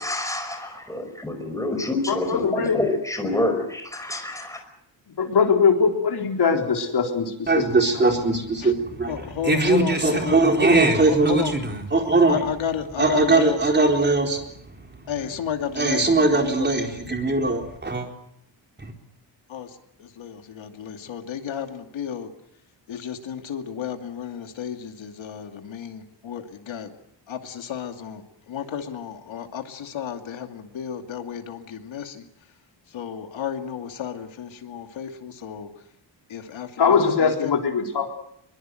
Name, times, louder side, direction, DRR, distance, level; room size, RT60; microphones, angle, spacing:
voice 1, 0.0-4.6, left 2 dB, 5° left, 5 dB, 5.4 m, -27 dB
voice 2, 2.1-2.8 5.2-7.6 36.8-38.2, left 5 dB, 60° left, 2 dB, 4.2 m, -21 dB
voice 3, 7.5-12.4 13.0-14.4 15.8-18.1 18.8-18.9, right 3 dB, 20° right, 3 dB, 4.2 m, -20 dB
voice 4, 9.1-10.4 11.1-11.5 12.3-13.6 15.1-16.7 17.0-17.1 19.5-22.3 22.9-26.9 27.3-32.3 32.9-35.7 36.3-37.5, left 8 dB, 80° left, 6 dB, 2.6 m, -32 dB
23.5 x 23.0 x 7.8 m, 0.75 s
wide cardioid pair, 140°, 45 cm